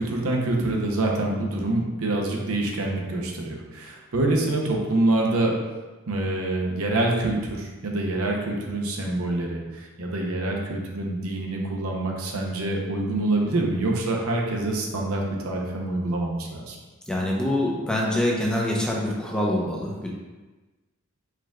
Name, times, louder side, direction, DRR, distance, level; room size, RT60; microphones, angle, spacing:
voice 1, 0.0-5.6 6.1-16.8, right 2 dB, 80° right, 0 dB, 0.7 m, -26 dB
voice 2, 17.1-20.1, left 1 dB, 5° left, -3 dB, 0.6 m, -25 dB
4.7 x 2.3 x 3.6 m, 1.2 s
head